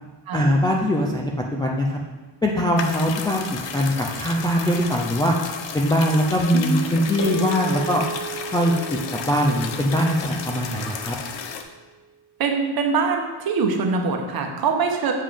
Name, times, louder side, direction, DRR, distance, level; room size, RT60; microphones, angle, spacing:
voice 1, 0.3-2.0 2.4-3.5 3.7-5.3 5.7-8.0 8.5-8.7 9.1-11.2, equal, 10° left, -2 dB, 0.3 m, -21 dB
sound 1, 2.8-11.6, left 6 dB, 60° left, 0.8 m, -33 dB
sound 2, 7.2-11.7, right 2 dB, 45° left, 1.4 m, -34 dB
voice 2, 12.4-15.1, right 5 dB, 45° right, 3 dB, 1.0 m, -23 dB
7.5 x 7.2 x 3.4 m, 1.3 s
cardioid pair, 160°, 49 cm